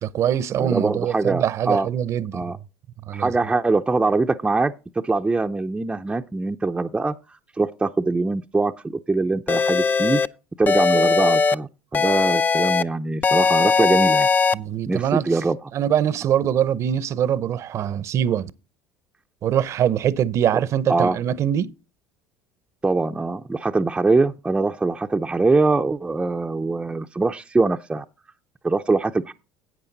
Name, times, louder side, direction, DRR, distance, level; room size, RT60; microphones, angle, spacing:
voice 1, 0.0-2.4 3.1-3.3 14.5-15.4 15.7-18.5 19.4-21.7, right 10 dB, 50° right, 0.7 m, -23 dB
voice 2, 0.6-1.9 2.3-2.6 3.1-4.7 5.0-10.2 10.6-14.3 14.9-15.6 20.9-21.2 22.8-28.0 28.6-29.3, right 3 dB, 15° right, 0.6 m, -23 dB
sound 1, 9.5-10.3 10.7-11.5 11.9-12.8 13.2-14.5, left 5 dB, 30° left, 0.5 m, -19 dB
11.0 x 8.4 x 4.0 m
hypercardioid pair, 80°, 6 cm